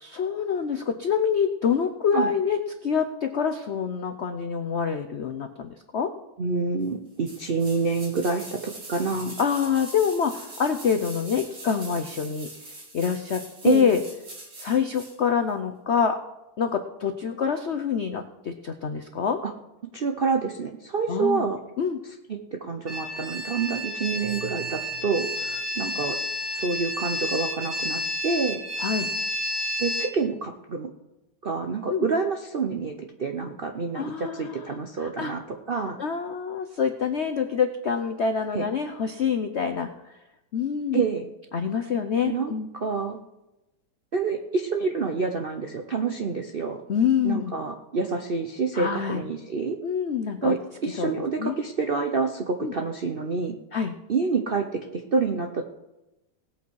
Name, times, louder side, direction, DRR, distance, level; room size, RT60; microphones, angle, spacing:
voice 1, 0.0-6.1 9.4-12.5 12.9-14.0 14.6-16.2 16.6-19.4 21.1-21.5 21.8-22.0 28.8-29.1 31.9-32.1 33.9-34.7 35.0-35.3 36.0-40.2 40.5-41.0 41.5-42.7 46.9-47.5 48.7-49.2 49.8-50.5 51.0-51.1 51.4-51.6 52.6-52.7 53.7-53.9, left 7 dB, 75° left, 7 dB, 0.6 m, -26 dB
voice 2, 6.4-9.3 13.6-13.9 19.4-19.5 19.9-21.6 22.3-26.2 26.5-28.6 29.8-30.9 31.4-35.4 35.7-36.0 38.5-38.6 40.9-41.3 42.2-43.2 44.1-46.8 47.2-49.8 50.4-50.6 50.8-53.6 54.1-55.6, right 4 dB, 65° right, 4 dB, 0.5 m, -27 dB
sound 1, 7.2-15.2 15.5-15.6, right 2 dB, 80° right, 3.5 m, -43 dB
sound 2, 22.9-30.1, left 1 dB, 25° right, 1.8 m, -30 dB
18.0 x 8.4 x 4.6 m, 0.96 s
omnidirectional pair, 2.1 m